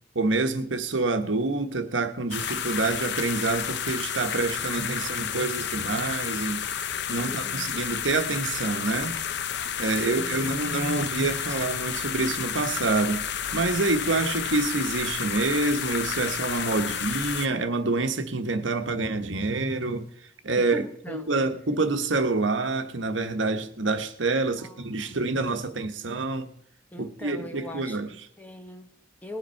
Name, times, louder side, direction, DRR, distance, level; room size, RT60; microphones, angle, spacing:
voice 1, 0.1-6.6 7.1-9.1 9.8-13.2 13.5-20.0 20.4-20.8 21.1-26.5 27.0-28.1, right 3 dB, 75° right, 1.2 m, -27 dB
sound 1, 2.3-17.5, left 8 dB, 65° left, 0.7 m, -31 dB
voice 2, 7.2-7.9 9.9-10.4 11.5-11.6 16.8-17.0 20.6-21.4 24.6-25.1 26.9-29.4, left 1 dB, 10° left, 1.1 m, -41 dB
19.5 x 8.2 x 4.5 m
head